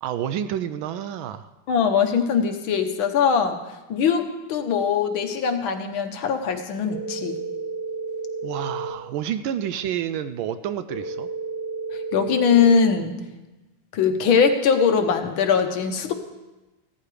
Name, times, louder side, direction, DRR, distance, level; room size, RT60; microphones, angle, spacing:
voice 1, 0.0-1.5 8.4-11.3, right 9 dB, 75° right, 11 dB, 1.3 m, -29 dB
voice 2, 1.7-3.6 3.9-7.4 12.1-13.2 13.9-16.1, left 6 dB, 70° left, 6 dB, 1.7 m, -21 dB
sound 1, 6.9-8.9 10.9-12.9, right 3 dB, 50° right, 3.4 m, -31 dB
15.5 x 13.5 x 3.3 m, 1.1 s
omnidirectional pair, 2.4 m